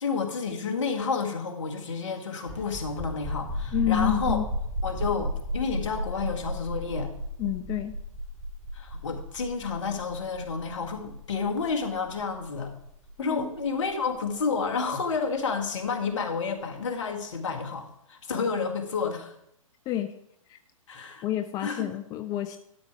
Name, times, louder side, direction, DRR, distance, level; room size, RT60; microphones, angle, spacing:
voice 1, 0.0-4.4 4.8-7.1 8.7-12.7 13.2-19.3 20.9-21.2 21.6-21.9, left 5 dB, 60° left, 4 dB, 1.8 m, -30 dB
sound 1, 2.4-15.8, equal, ahead, 3.0 m, -34 dB
voice 2, 3.7-4.4 7.4-7.9 13.2-13.5 19.9-20.1 20.5-20.6 21.2-22.6, left 12 dB, 20° left, 9 dB, 0.5 m, -29 dB
12.5 x 6.4 x 4.8 m, 0.76 s
figure-of-eight pair, 120°, 18 cm